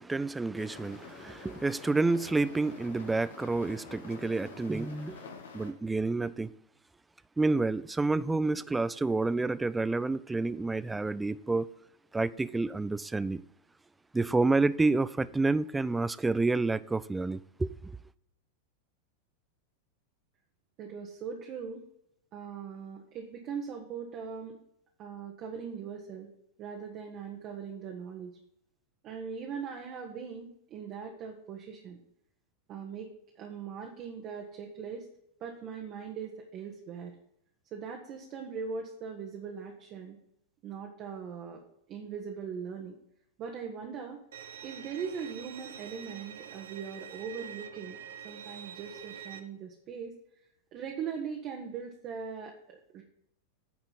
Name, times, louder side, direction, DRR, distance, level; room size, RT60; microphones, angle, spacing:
voice 1, 0.0-5.2 5.5-6.5 7.4-11.7 12.1-13.4 14.1-17.9, right 3 dB, 10° right, 0.3 m, -29 dB
sound 1, 0.6-5.7, left 5 dB, 65° left, 1.1 m, -48 dB
voice 2, 20.8-21.8 22.3-24.6 25.0-26.3 26.6-28.4 29.0-32.0 32.7-33.1 33.4-35.0 35.4-37.1 37.7-40.2 40.6-41.6 41.9-43.0 43.4-44.2 44.6-48.0 48.2-50.1 50.7-53.0, right 6 dB, 35° right, 1.1 m, -40 dB
Bowed string instrument, 44.3-49.4, right 9 dB, 60° right, 0.6 m, -46 dB
9.7 x 4.3 x 7.0 m
figure-of-eight pair, 90°, 0 cm